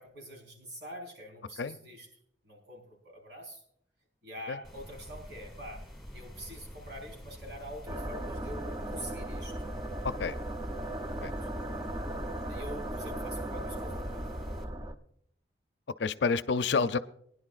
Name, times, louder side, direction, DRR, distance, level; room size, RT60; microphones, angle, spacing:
voice 1, 0.0-2.1 2.4-3.6 4.2-5.8 6.1-9.6 11.2-11.5 12.5-14.3, equal, 70° right, 0 dB, 4.6 m, -45 dB
sound 1, 4.6-14.6, equal, ahead, 2.2 m, -47 dB
sound 2, 7.9-14.9, right 1 dB, 20° right, 0.6 m, -37 dB
voice 2, 10.0-10.3 11.2-11.3 16.0-17.0, left 5 dB, 75° left, 13 dB, 0.5 m, -29 dB
21.0 x 11.0 x 2.4 m, 0.67 s
head